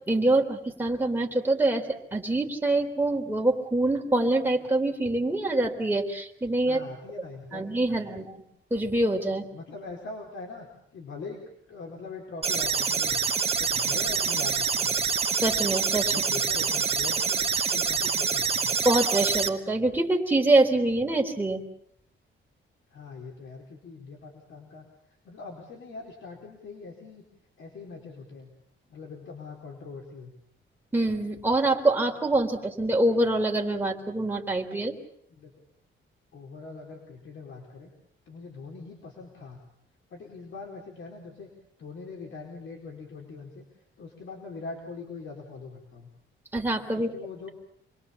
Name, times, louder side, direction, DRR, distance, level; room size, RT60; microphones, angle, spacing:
voice 1, 0.1-6.8 7.5-8.4 8.7-9.5 15.4-16.2 17.6-17.7 18.8-21.6 30.9-34.9 46.5-47.1, right 2 dB, 10° right, 1 dB, 3.5 m, -25 dB
voice 2, 6.6-8.3 9.5-10.7 10.9-11.4 11.7-13.2 13.6-15.0 16.1-18.7 22.9-24.8 25.2-27.2 27.6-28.5 28.9-30.3 35.4-35.5 36.3-37.9 38.3-39.6 40.1-41.5 41.8-43.6 44.0-46.1 46.9-47.5, left 4 dB, 65° left, 0 dB, 4.6 m, -42 dB
sound 1, 12.4-19.5, right 6 dB, 30° right, 2.0 m, -26 dB
28.0 x 22.0 x 7.2 m, 0.70 s
wide cardioid pair, 155°, 21 cm